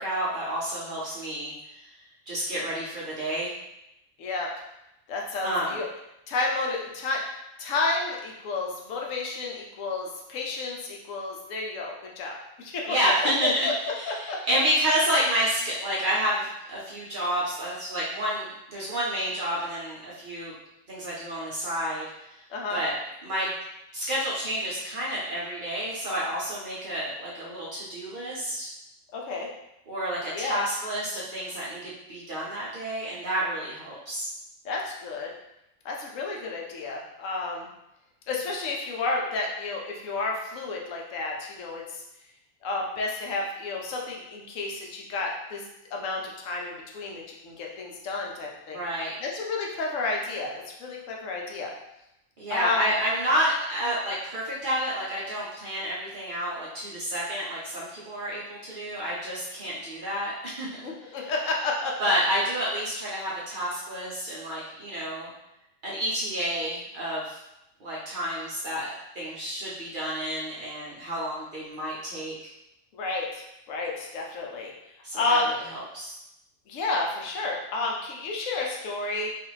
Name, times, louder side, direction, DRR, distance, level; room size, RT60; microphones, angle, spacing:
voice 1, 0.0-1.9 2.3-3.5 5.4-5.8 12.9-20.5 20.9-22.4 22.7-22.9 23.2-23.5 23.9-28.7 29.9-34.3 48.7-49.1 52.4-60.7 61.0-61.2 62.0-65.3 65.8-67.4 67.8-72.3 75.0-76.2, equal, 50° right, -6 dB, 0.7 m, -29 dB
voice 2, 4.2-4.5 5.1-5.9 6.3-7.2 7.6-13.1 13.4-13.7 14.1-14.4 22.5-22.8 29.1-29.5 30.3-30.6 34.6-35.3 35.8-37.7 38.3-42.0 42.6-45.6 45.9-48.8 49.2-51.7 52.5-52.9 60.8-62.1 72.9-74.7 75.1-75.5 76.7-79.3, left 3 dB, 80° left, -1 dB, 0.9 m, -31 dB
2.5 x 2.4 x 3.1 m, 0.86 s
omnidirectional pair, 1.3 m